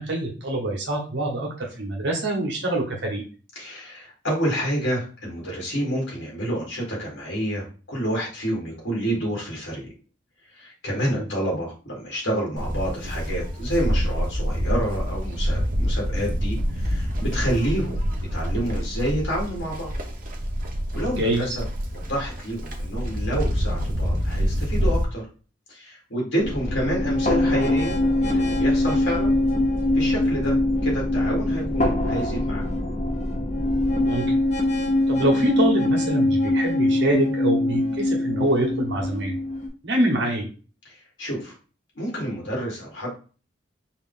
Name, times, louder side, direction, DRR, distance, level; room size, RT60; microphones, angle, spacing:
voice 1, 0.0-3.2 11.1-11.2 21.2-21.4 34.0-34.2 35.1-39.3 39.8-40.5, right 1 dB, 65° right, -1 dB, 1.2 m, -25 dB
voice 2, 3.6-9.9 10.5-18.0 18.3-19.9 20.9-21.7 21.9-25.2 25.7-29.3 29.9-30.6 30.8-32.7 40.9-41.5 42.0-43.1, equal, 70° left, -2 dB, 2.0 m, -29 dB
Livestock farm animals working animals, 12.6-25.0, equal, 45° right, 0.9 m, -26 dB
sound 1, 26.4-39.7, left 1 dB, 40° left, 0.9 m, -23 dB
4.8 x 2.6 x 3.8 m, 0.37 s
head